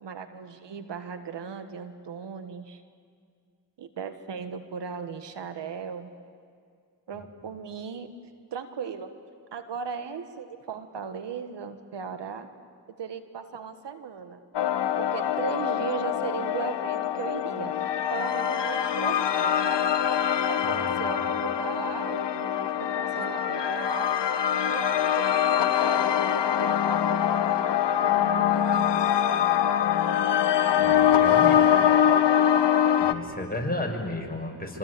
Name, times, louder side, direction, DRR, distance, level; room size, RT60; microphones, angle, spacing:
voice 1, 0.0-2.8 3.8-6.1 7.1-8.1 8.5-9.1 9.5-12.5 13.0-14.4 15.0-17.7 18.1-19.7 20.5-24.1 24.7-29.1 31.4-31.8, right 6 dB, 85° right, 9 dB, 1.7 m, -37 dB
sound 1, 14.5-33.1, left 9 dB, 80° left, 1.3 m, -24 dB
voice 2, 20.7-21.0 30.8-31.6 33.0-34.8, left 2 dB, 20° left, 1 dB, 6.2 m, -33 dB
26.0 x 25.5 x 8.6 m, 2.1 s
cardioid pair, 55°, 41 cm